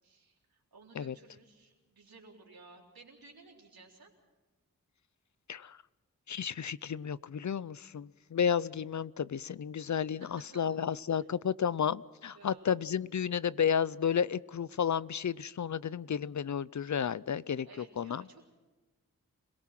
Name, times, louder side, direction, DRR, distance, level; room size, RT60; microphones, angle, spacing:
voice 1, 0.0-4.1 10.2-10.8 11.1-11.3 12.3-12.7 17.6-18.5, right 3 dB, 85° right, 0 dB, 3.8 m, -56 dB
voice 2, 6.3-18.2, left 7 dB, 55° left, 20 dB, 0.6 m, -32 dB
26.5 x 18.0 x 6.0 m, 1.2 s
cardioid pair, 40°, 35 cm